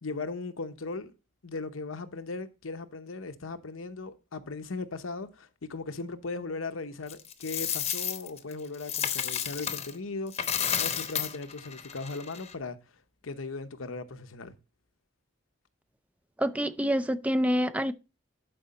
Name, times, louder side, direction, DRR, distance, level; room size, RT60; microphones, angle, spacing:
voice 1, 0.0-1.1 1.4-12.8 13.2-14.5, left 3 dB, 90° left, 0.9 m, -38 dB
Coin (dropping), 7.1-9.9 10.3-12.5, left 8 dB, 30° left, 0.8 m, -32 dB
voice 2, 16.4-17.9, equal, 5° right, 0.4 m, -27 dB
11.5 x 4.9 x 4.2 m
head